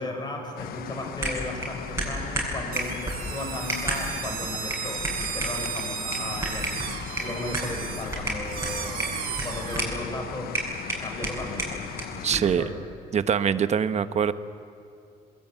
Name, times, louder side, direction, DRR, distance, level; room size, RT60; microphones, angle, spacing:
voice 1, 0.0-5.0 5.3-6.7 7.2-10.5 11.0-12.8, left 1 dB, 25° left, 3 dB, 6.1 m, -35 dB
sound 1, 0.6-12.4, left 11 dB, 60° left, 0.8 m, -39 dB
sound 2, 1.2-12.6, right 1 dB, 15° right, 7.7 m, -33 dB
sound 3, 2.7-9.8, right 8 dB, 60° right, 2.2 m, -35 dB
voice 2, 12.2-12.6 13.1-14.3, right 7 dB, 40° right, 12 dB, 1.0 m, -23 dB
22.0 x 20.0 x 9.1 m, 2.6 s
cardioid pair, 110°, 17 cm